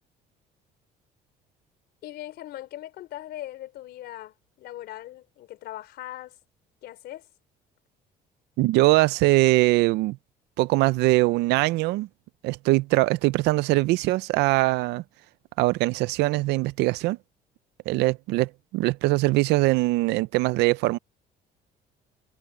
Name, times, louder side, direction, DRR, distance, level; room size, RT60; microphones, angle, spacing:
voice 1, 2.0-6.4 6.8-7.3, left 14 dB, 75° left, 4.1 m, -40 dB
voice 2, 8.6-10.2 10.6-12.1 12.4-15.0 15.6-17.2 17.9-21.0, right 20 dB, 85° right, 0.5 m, -22 dB
cardioid pair, 110°, 17 cm